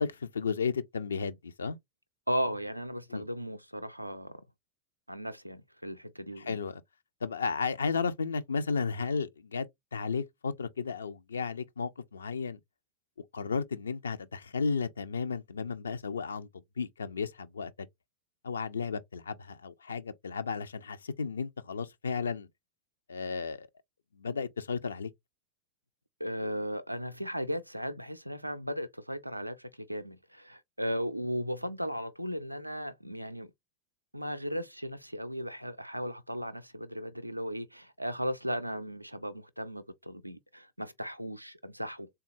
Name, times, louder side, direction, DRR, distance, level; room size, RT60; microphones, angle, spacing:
voice 1, 0.0-1.8 3.1-3.2 6.4-6.8 7.2-9.7 9.9-12.6 13.3-16.5 16.8-17.7 18.4-22.5 23.1-23.7 24.2-25.1, left 5 dB, 70° left, 0.3 m, -33 dB
voice 2, 2.3-4.4 5.1-6.6 26.2-33.5 34.1-42.1, equal, 90° right, 0.3 m, -36 dB
3.6 x 2.2 x 2.8 m
figure-of-eight pair, 90°, 0 cm